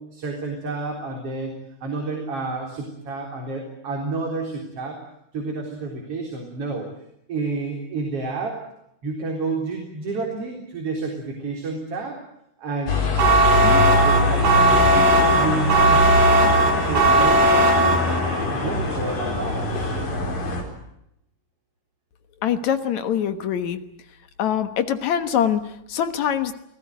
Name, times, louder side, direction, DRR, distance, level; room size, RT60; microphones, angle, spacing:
voice 1, 0.0-1.5 1.8-5.0 5.3-6.9 7.3-8.6 9.0-12.2 12.6-13.0 13.5-16.1 16.8-18.0 18.5-19.9, right 3 dB, 45° right, 1 dB, 4.8 m, -30 dB
sound 1, 12.9-20.6, left 1 dB, 80° left, 6.3 m, -23 dB
sound 2, 13.2-18.4, right 1 dB, 80° right, 6.4 m, -18 dB
sound 3, 14.7-20.0, equal, 35° left, 8.8 m, -38 dB
voice 2, 22.4-23.8 24.4-26.5, left 9 dB, 65° left, 10 dB, 2.5 m, -23 dB
28.5 x 18.5 x 9.4 m, 0.79 s
omnidirectional pair, 3.8 m